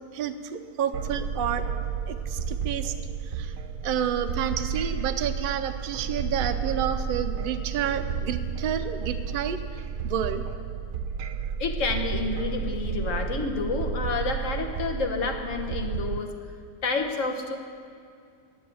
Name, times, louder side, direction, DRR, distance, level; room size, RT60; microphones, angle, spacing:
voice 1, 0.1-1.6 2.1-2.9 3.2-3.6 3.8-9.6 10.0-10.4, right 8 dB, 55° right, 7 dB, 0.6 m, -30 dB
sound 1, 0.9-16.2, right 6 dB, 75° right, 1.1 m, -32 dB
voice 2, 11.6-16.3 16.8-17.6, left 4 dB, 55° left, 3 dB, 1.4 m, -29 dB
11.0 x 10.0 x 8.4 m, 2.3 s
omnidirectional pair, 1.7 m